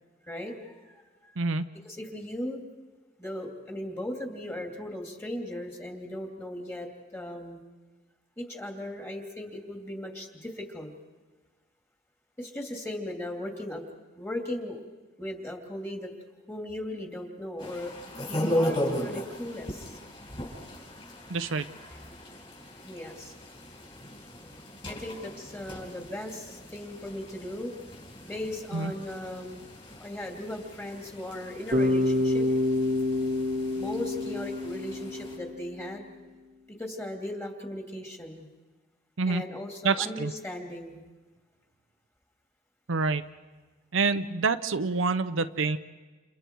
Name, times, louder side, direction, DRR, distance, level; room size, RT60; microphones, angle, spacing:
voice 1, 0.2-0.9 1.2-1.3 1.8-2.6 3.2-7.6 8.4-10.9 12.4-13.8 14.2-14.8 15.2-16.1 16.5-17.9 18.3-20.0 22.8-23.3 24.9-27.7 28.2-29.6 30.0-32.4 33.7-36.1 36.7-38.5 39.3-41.0, left 1 dB, 15° left, 2 dB, 2.8 m, -37 dB
sound 1, 17.6-35.4, equal, 30° left, 5.6 m, -37 dB
voice 2, 21.3-21.7 28.7-28.9 39.2-39.4 39.8-40.3 42.9-43.3 43.9-45.8, right 4 dB, 75° right, 10 dB, 0.7 m, -27 dB
Bass guitar, 31.7-35.8, left 2 dB, 40° right, 1.3 m, -27 dB
29.5 x 29.0 x 4.6 m, 1.3 s
head